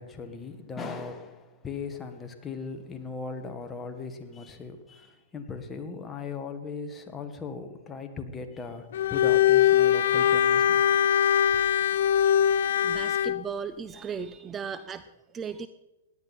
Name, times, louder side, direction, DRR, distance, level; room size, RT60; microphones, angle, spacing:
voice 1, 0.0-11.1, left 4 dB, 15° left, 6 dB, 1.6 m, -38 dB
Bowed string instrument, 8.9-13.4, left 10 dB, 70° left, 0.3 m, -22 dB
voice 2, 11.8-15.7, right 6 dB, 20° right, 12 dB, 0.5 m, -38 dB
17.5 x 10.5 x 4.3 m, 1.0 s
hypercardioid pair, 130°, 0 cm